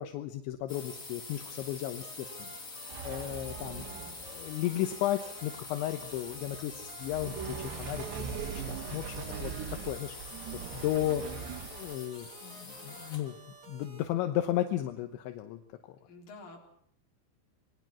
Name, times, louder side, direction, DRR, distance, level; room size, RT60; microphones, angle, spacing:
voice 1, 0.0-3.8 4.2-10.4 10.7-11.2 11.7-13.4 13.7-15.6 15.9-16.0, left 13 dB, 80° left, 7 dB, 3.4 m, -34 dB
sound 1, 0.7-13.4, left 3 dB, 20° left, 2.8 m, -45 dB
sound 2, 2.0-14.0, right 4 dB, 30° right, 3.0 m, -53 dB
sound 3, 2.9-12.0, right 7 dB, 70° right, 3.8 m, -41 dB
voice 2, 3.8-4.3 16.1-16.6, left 2 dB, 50° left, 1 dB, 5.6 m, -50 dB
27.5 x 20.5 x 6.0 m, 0.66 s
omnidirectional pair, 5.3 m